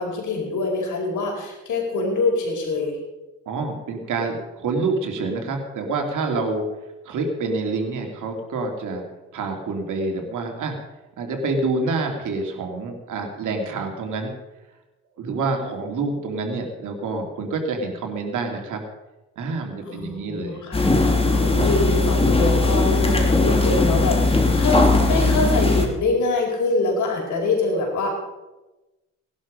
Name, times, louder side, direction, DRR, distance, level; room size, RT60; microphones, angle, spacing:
voice 1, 0.0-3.0 15.6-15.8 19.8-28.1, left 2 dB, 70° left, 1 dB, 4.8 m, -24 dB
voice 2, 3.5-6.7 7.0-9.0 9.3-10.7 11.2-14.3 15.2-18.8 19.4-20.6, right 3 dB, 70° right, 3 dB, 2.9 m, -27 dB
sound 1, 20.7-25.9, left 2 dB, 20° left, 3.0 m, -19 dB
18.5 x 11.5 x 5.2 m, 1.1 s
cardioid pair, 85°, 31 cm